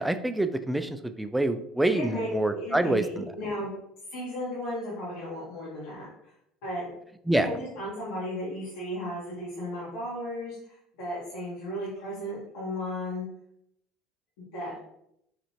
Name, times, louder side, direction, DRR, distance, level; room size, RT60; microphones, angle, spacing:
voice 1, 0.0-3.3 7.3-7.5, right 1 dB, 5° right, 9 dB, 0.3 m, -26 dB
voice 2, 1.9-3.8 4.1-6.3 6.6-6.9 7.3-13.2 14.4-14.7, left 1 dB, 80° left, -8 dB, 1.4 m, -35 dB
4.9 x 2.6 x 2.8 m, 0.76 s
supercardioid pair, 95°, 0 cm